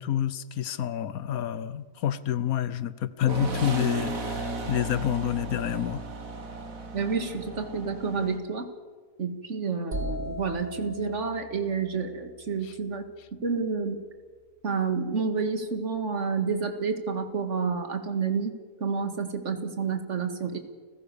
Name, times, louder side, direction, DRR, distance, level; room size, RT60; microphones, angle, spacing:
voice 1, 0.0-6.0, left 10 dB, 85° left, 16 dB, 1.4 m, -28 dB
sound 1, 3.3-8.4, right 2 dB, 75° right, 2.5 m, -34 dB
voice 2, 6.9-8.7 9.2-13.1 13.4-14.0 14.6-18.5 18.8-20.6, right 5 dB, 55° right, 7 dB, 2.2 m, -29 dB
sound 2, 9.9-13.7, equal, 35° right, 1.7 m, -39 dB
30.0 x 15.5 x 7.0 m, 1.5 s
omnidirectional pair, 1.5 m